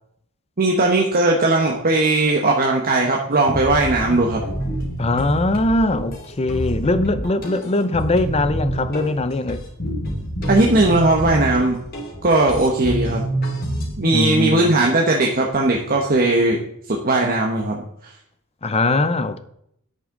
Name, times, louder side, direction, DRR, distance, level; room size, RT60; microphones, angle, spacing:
voice 1, 0.6-4.4 10.5-11.8 12.2-13.2 14.0-16.6 16.9-18.1, right 2 dB, 40° right, 1.2 m, -18 dB
sound 1, 3.5-13.9, right 1 dB, 45° left, 2.9 m, -27 dB
voice 2, 5.0-9.6 14.0-14.7 18.6-19.4, left 2 dB, 30° left, 0.6 m, -21 dB
10.5 x 8.3 x 3.9 m
head